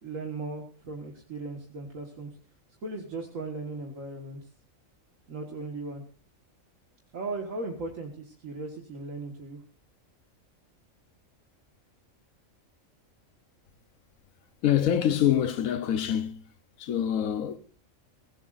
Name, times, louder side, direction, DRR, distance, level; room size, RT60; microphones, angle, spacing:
voice 1, 0.0-2.3 2.8-4.5 5.3-6.0 7.1-9.6, right 3 dB, 70° right, 2.1 m, -37 dB
voice 2, 14.6-16.4 16.8-17.6, left 10 dB, 80° left, 1.4 m, -25 dB
23.5 x 15.0 x 2.6 m
omnidirectional pair, 1.4 m